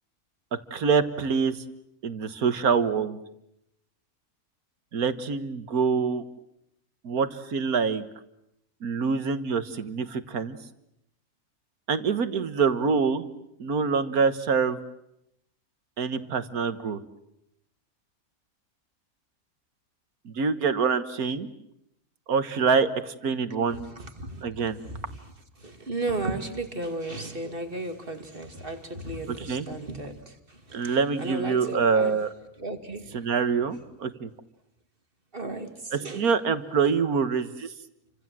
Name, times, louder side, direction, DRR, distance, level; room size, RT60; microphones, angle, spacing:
voice 1, 0.7-1.6 2.0-3.2 4.9-6.2 7.0-8.1 8.8-10.6 11.9-13.3 13.6-14.8 16.0-17.0 20.3-21.5 22.3-23.9 24.4-24.8 29.4-29.7 30.7-32.3 33.1-34.3 35.9-37.7, right 5 dB, 85° right, 11 dB, 1.9 m, -25 dB
voice 2, 23.5-24.6 24.8-32.2 32.6-33.3 35.3-36.3, right 2 dB, 40° right, 6 dB, 2.6 m, -35 dB
29.5 x 25.0 x 7.6 m, 0.82 s
omnidirectional pair, 1.5 m